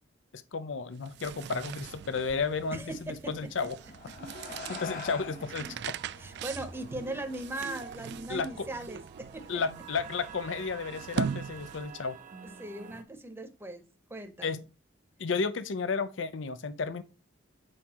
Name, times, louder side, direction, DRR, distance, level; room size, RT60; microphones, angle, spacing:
voice 1, 0.3-3.8 4.7-5.9 8.3-8.7 9.5-12.2 14.4-14.6 15.2-17.0, left 5 dB, 80° left, 0.5 m, -33 dB
sound 1, 0.9-12.1, right 7 dB, 60° right, 0.3 m, -41 dB
voice 2, 2.7-3.3 4.3-4.8 6.2-9.6 12.4-13.8 14.1-14.6, right 1 dB, 10° right, 0.8 m, -39 dB
sound 2, 3.5-8.3, left 3 dB, 45° left, 1.0 m, -46 dB
sound 3, 4.1-13.0, right 5 dB, 40° right, 0.7 m, -48 dB
7.6 x 4.7 x 2.9 m
head